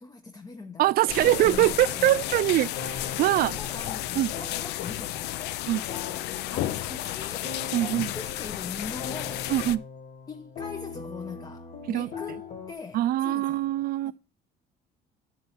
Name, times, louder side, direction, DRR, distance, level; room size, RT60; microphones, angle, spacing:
voice 1, 0.0-2.2 3.4-5.6 6.5-9.5 10.3-13.6 14.0-14.1, left 4 dB, 20° left, 0.6 m, -42 dB
voice 2, 0.8-2.7 3.2-3.6 4.2-4.3 5.7-5.8 7.7-8.1 9.5-9.8 11.9-12.1 12.9-14.1, right 14 dB, 60° right, 0.4 m, -23 dB
sound 1, 1.1-9.8, left 14 dB, 80° left, 0.4 m, -33 dB
sound 2, 1.2-12.7, left 4 dB, 45° left, 1.4 m, -42 dB
9.6 x 4.4 x 5.6 m
cardioid pair, 110°, 17 cm